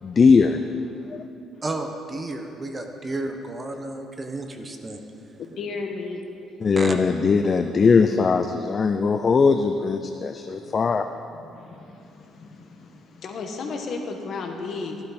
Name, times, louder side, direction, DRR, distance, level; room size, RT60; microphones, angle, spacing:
voice 1, 0.0-0.6 6.6-11.0, left 5 dB, 30° left, 7 dB, 0.4 m, -20 dB
voice 2, 1.6-5.0 6.8-7.0, right 2 dB, 20° right, 4 dB, 1.0 m, -32 dB
voice 3, 5.4-6.2 10.5-10.6 11.3-15.1, left 4 dB, 50° left, 3 dB, 1.5 m, -34 dB
15.5 x 12.0 x 4.2 m, 2.7 s
cardioid pair, 140°, 0 cm